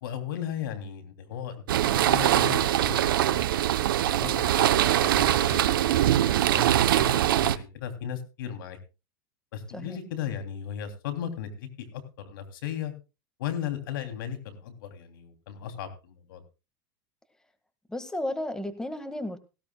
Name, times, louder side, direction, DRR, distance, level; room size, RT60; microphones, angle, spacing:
voice 1, 0.0-3.0 3.3-5.8 6.2-8.8 9.5-12.9 13.4-16.4, left 9 dB, 80° left, 6 dB, 3.1 m, -36 dB
sound 1, 1.7-7.6, right 12 dB, 90° right, 0.8 m, -23 dB
voice 2, 17.9-19.4, left 1 dB, 5° left, 9 dB, 1.8 m, -33 dB
17.5 x 16.5 x 2.3 m, 0.30 s
supercardioid pair, 105°, 11 cm